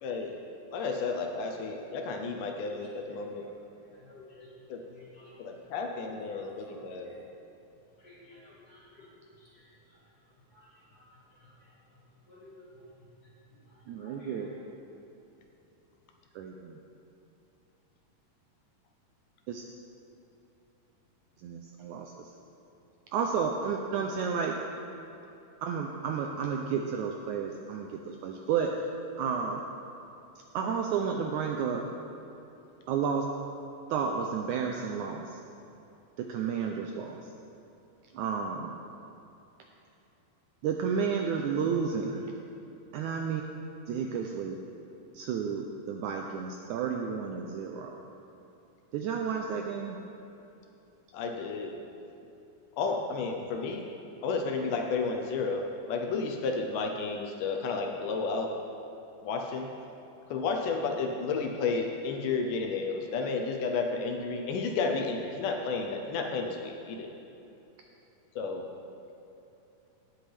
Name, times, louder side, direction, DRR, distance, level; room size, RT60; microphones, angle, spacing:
voice 1, 0.0-0.3 0.7-3.5 4.7-4.8 5.4-7.2 51.1-51.8 52.8-53.8 54.2-55.6 55.9-58.5 59.2-59.7 60.3-67.1 68.4-68.7, left 4 dB, 75° left, 3 dB, 2.2 m, -32 dB
voice 2, 3.9-4.5 4.8-5.3 6.3-6.8 7.0-7.2 8.0-9.1 9.4-9.6 10.5-10.7 10.9-11.0 12.3-12.7 14.0-14.5, left 3 dB, 35° left, -6 dB, 1.8 m, -54 dB
voice 3, 13.9-14.5 16.4-16.8 21.4-22.1 23.1-24.6 25.6-28.7 29.2-29.6 30.5-31.8 32.9-33.2 33.9-35.3 36.2-37.2 38.2-38.7 40.6-42.2 42.9-43.4 43.9-44.6 45.2-48.0 48.9-50.0, right 6 dB, 90° right, 2 dB, 1.7 m, -31 dB
17.5 x 8.1 x 3.4 m, 2.9 s
omnidirectional pair, 4.0 m